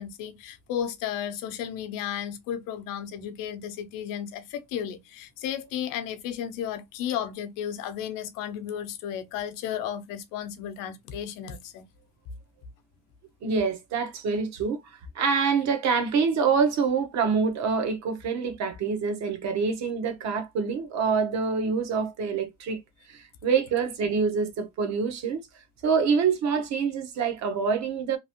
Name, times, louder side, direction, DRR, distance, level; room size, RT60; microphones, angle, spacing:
voice 1, 0.0-11.9, left 9 dB, 80° left, 0.7 m, -34 dB
voice 2, 13.4-22.8 23.1-25.4 25.8-28.2, right 5 dB, 55° right, 0.9 m, -26 dB
3.0 x 2.5 x 2.8 m
cardioid pair, 140°, 33 cm